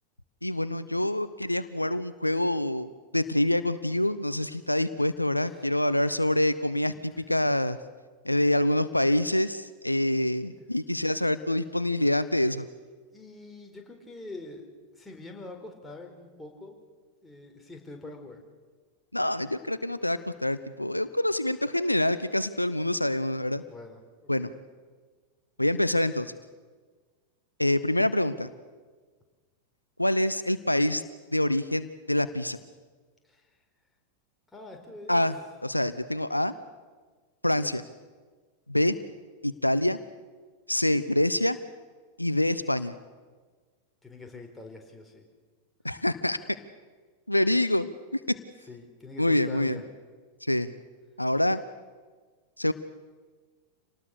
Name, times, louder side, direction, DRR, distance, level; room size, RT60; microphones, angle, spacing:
voice 1, 0.4-7.8 8.2-12.7 19.1-23.6 24.3-24.5 25.6-26.3 27.6-28.5 30.0-31.0 31.3-32.6 35.1-35.3 35.6-36.5 37.4-37.8 38.7-39.0 39.4-40.0 40.7-41.6 42.2-42.9 45.8-46.4 47.3-48.2 49.2-49.8 50.4-50.7 51.2-51.6 52.6-52.7, left 1 dB, 85° left, 14 dB, 0.7 m, -26 dB
voice 2, 13.1-14.6 14.9-16.7 17.2-18.4 23.7-24.5 33.3-33.4 34.5-35.2 37.6-37.7 44.0-45.2 48.7-49.8, left 2 dB, 10° left, 1 dB, 4.4 m, -44 dB
27.5 x 19.0 x 6.7 m, 1.5 s
figure-of-eight pair, 90°, 0 cm